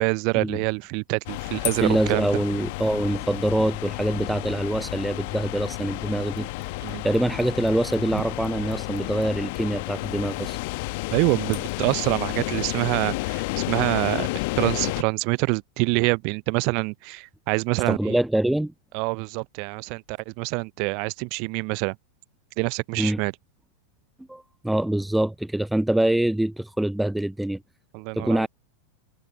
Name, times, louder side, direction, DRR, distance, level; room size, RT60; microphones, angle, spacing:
voice 1, 0.0-2.3 6.8-7.0 8.1-8.2 11.1-18.2 18.9-21.9 22.6-23.3 27.9-28.5, right 33 dB, 45° right, 0.8 m, -26 dB
sound 1, 1.3-15.0, left 25 dB, 50° left, 1.2 m, -31 dB
voice 2, 1.8-6.5 7.0-10.6 17.9-18.7 23.0-23.2 24.3-27.6 28.1-28.5, right 1 dB, 5° right, 0.3 m, -24 dB
figure-of-eight pair, 90°, 0 cm